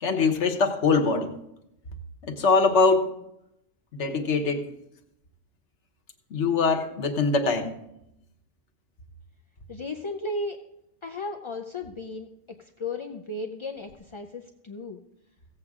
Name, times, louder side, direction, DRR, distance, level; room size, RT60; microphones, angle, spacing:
voice 1, 0.0-1.3 2.2-3.1 3.9-4.7 6.3-7.7, left 4 dB, 75° left, 4 dB, 1.5 m, -23 dB
voice 2, 9.7-10.6 11.0-12.3 12.6-15.0, left 2 dB, 40° left, 4 dB, 0.4 m, -35 dB
16.0 x 8.1 x 3.6 m, 0.82 s
omnidirectional pair, 1.2 m